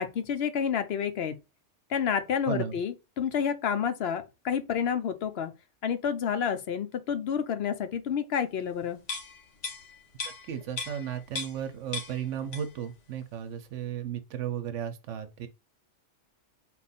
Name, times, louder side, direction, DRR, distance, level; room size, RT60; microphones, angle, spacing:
voice 1, 0.0-1.4 1.9-5.5 5.8-9.0, left 7 dB, 65° left, 0.8 m, -29 dB
voice 2, 2.5-2.8 10.5-15.5, right 9 dB, 85° right, 1.0 m, -34 dB
sound 1, 9.0-11.7 11.9-12.9 13.2-13.4, left 4 dB, 80° left, 1.5 m, -38 dB
4.2 x 2.4 x 4.0 m
omnidirectional pair, 1.2 m